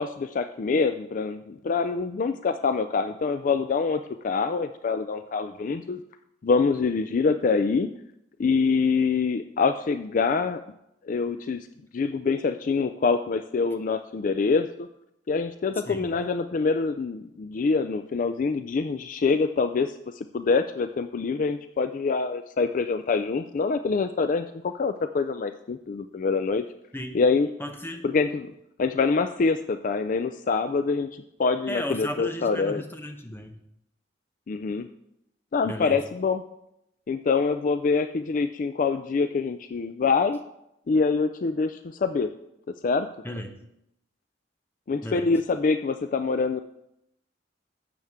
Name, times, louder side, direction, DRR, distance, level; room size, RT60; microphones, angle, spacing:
voice 1, 0.0-6.0 6.4-7.9 8.4-10.6 11.1-11.7 11.9-14.9 15.3-26.6 27.1-27.5 28.0-28.5 28.8-32.8 34.5-34.9 35.5-36.4 37.1-40.4 40.9-42.3 42.8-43.1 44.9-46.6, left 4 dB, 45° left, 10 dB, 0.4 m, -25 dB
voice 2, 27.6-28.1 31.7-33.5 35.6-36.0 43.2-43.6 45.0-45.3, equal, 10° left, 5 dB, 0.9 m, -35 dB
12.0 x 7.7 x 3.6 m, 0.81 s
head